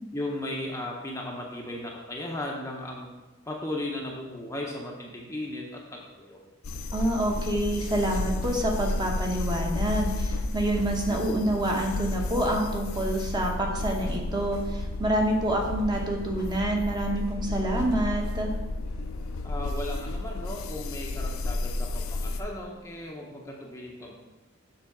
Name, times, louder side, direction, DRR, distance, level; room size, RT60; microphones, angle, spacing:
voice 1, 0.1-3.1 3.5-6.4 19.4-24.1, left 1 dB, 15° left, -1 dB, 0.7 m, -36 dB
sound 1, 6.6-22.4, left 2 dB, 75° left, 0.6 m, -32 dB
voice 2, 6.9-18.5, right 1 dB, 20° right, 0 dB, 1.0 m, -27 dB
6.9 x 4.0 x 5.9 m, 1.1 s
head